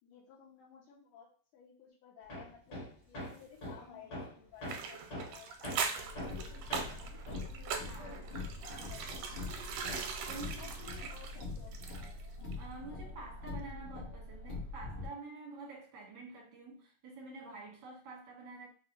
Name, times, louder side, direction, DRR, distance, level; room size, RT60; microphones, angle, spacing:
voice 1, 0.0-7.2 8.0-9.5 10.6-12.2, left 8 dB, 80° left, 2.3 m, -57 dB
Hammer, 2.3-9.6 9.9-11.7, left 1 dB, 45° left, 1.4 m, -46 dB
sound 1, 4.7-12.3 12.5-12.6, right 6 dB, 85° right, 2.1 m, -41 dB
Car, 6.0-15.1, left 2 dB, 60° left, 1.3 m, -44 dB
voice 2, 7.8-8.2 10.3-10.9 12.5-18.7, right 3 dB, 60° right, 1.1 m, -48 dB
5.6 x 2.1 x 2.9 m
omnidirectional pair, 3.7 m